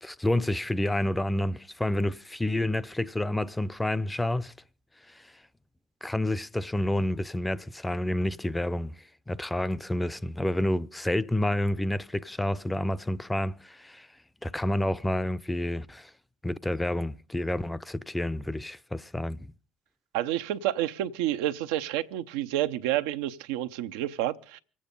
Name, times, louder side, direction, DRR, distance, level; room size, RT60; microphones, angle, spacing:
voice 1, 0.0-4.5 5.1-5.2 6.0-8.9 9.3-14.1 14.4-16.1 16.4-19.4, left 1 dB, 10° left, 0.6 m, -29 dB
voice 2, 20.1-24.6, right 13 dB, 85° right, 0.7 m, -29 dB
25.0 x 8.8 x 5.3 m
supercardioid pair, 70°, 0 cm